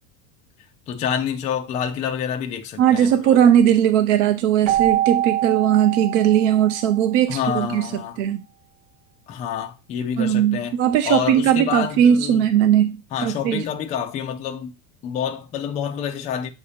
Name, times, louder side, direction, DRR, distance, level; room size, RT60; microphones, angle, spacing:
voice 1, 0.9-3.4 7.3-8.2 9.3-10.8 11.1-12.5 13.1-14.7 15.0-16.5, left 8 dB, 20° left, 0.3 m, -27 dB
voice 2, 2.8-8.4 10.2-13.0 13.2-13.6, right 10 dB, 60° right, 0.7 m, -18 dB
Keyboard (musical), 4.6-7.3, right 13 dB, 85° right, 1.2 m, -24 dB
7.0 x 2.8 x 4.8 m
supercardioid pair, 150°, 42 cm